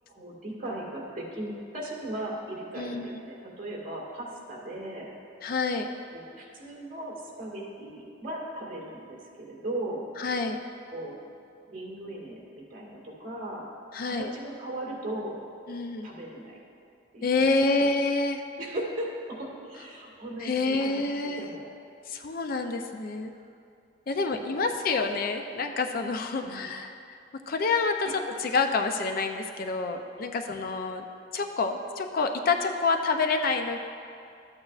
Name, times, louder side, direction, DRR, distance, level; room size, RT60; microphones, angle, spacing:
voice 1, 0.1-5.1 6.1-10.0 10.9-11.2 11.7-13.7 14.0-15.4 16.0-16.6 17.1-17.4 17.7-17.8 18.6-21.7 24.1-24.2 24.6-24.7 26.3-26.7 28.0-28.2, right 1 dB, 45° right, -4 dB, 2.0 m, -37 dB
voice 2, 2.8-3.1 5.4-5.9 10.2-10.6 13.9-14.3 15.7-16.1 17.2-18.4 20.4-21.5 22.1-23.3 24.1-27.2 27.5-28.1 28.4-31.0 31.3-33.8, left 3 dB, 50° left, 6 dB, 0.4 m, -27 dB
13.0 x 8.6 x 2.4 m, 2.5 s
head